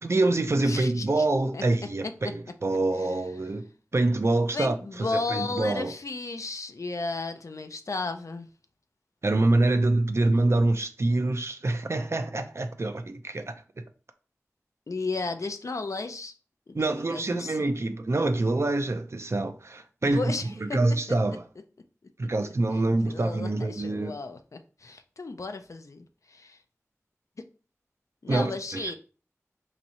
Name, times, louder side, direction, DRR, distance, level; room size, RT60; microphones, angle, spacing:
voice 1, 0.0-3.7 3.9-5.9 9.2-13.5 16.7-20.3 20.6-21.4 22.2-24.1 28.3-28.9, right 2 dB, 55° right, 0.5 m, -26 dB
voice 2, 0.6-1.2 1.5-1.6 2.0-2.1 4.5-8.5 14.9-16.3 16.7-17.6 20.1-20.8 22.4-22.5 23.1-26.6 28.2-29.0, left 3 dB, 75° left, 0.4 m, -34 dB
3.0 x 2.6 x 4.1 m
wide cardioid pair, 50°, 5 cm